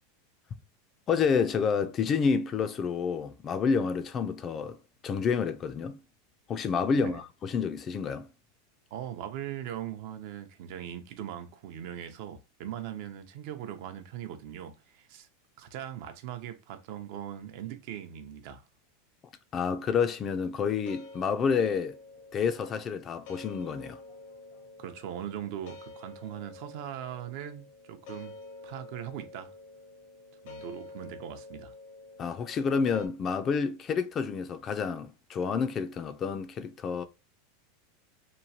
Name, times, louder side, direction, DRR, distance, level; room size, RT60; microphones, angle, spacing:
voice 1, 1.1-4.8 5.0-6.0 6.5-8.3 19.5-22.0 22.3-24.0 32.2-37.0, left 6 dB, 30° left, 0.4 m, -29 dB
voice 2, 8.9-15.3 15.6-18.6 24.8-28.4 28.6-29.5 30.4-31.7, right 10 dB, 60° right, 0.6 m, -40 dB
sound 1, 20.6-33.1, left 3 dB, 65° left, 0.7 m, -49 dB
3.0 x 2.2 x 2.7 m
supercardioid pair, 130°, 0 cm